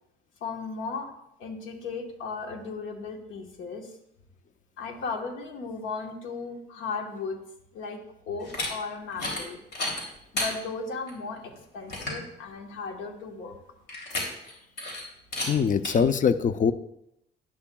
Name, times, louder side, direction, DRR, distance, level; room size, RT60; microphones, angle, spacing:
voice 1, 0.4-1.1 1.4-3.9 4.8-7.4 7.7-9.6 10.3-13.5, left 4 dB, 85° left, 4 dB, 1.3 m, -36 dB
sound 1, 8.4-8.7 9.1-9.4 9.7-10.5 11.1-11.2 11.6-11.7 11.9-12.2 13.9-14.5 14.8-15.0 15.3-15.5 15.8-15.9, left 2 dB, 60° left, 3.0 m, -31 dB
voice 2, 15.5-16.7, left 6 dB, 40° left, 13 dB, 0.5 m, -22 dB
11.0 x 10.0 x 2.3 m, 0.79 s
cardioid pair, 90°, 20 cm